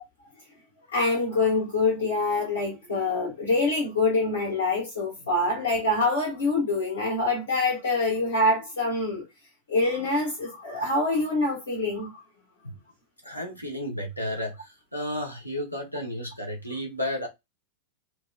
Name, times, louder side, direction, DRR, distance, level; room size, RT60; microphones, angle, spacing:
voice 1, 0.9-9.2 9.7-12.1, left 2 dB, 70° left, 1.5 m, -25 dB
voice 2, 13.2-17.3, left 1 dB, 90° left, 1.1 m, -32 dB
4.5 x 2.4 x 2.3 m
figure-of-eight pair, 90°, 0 cm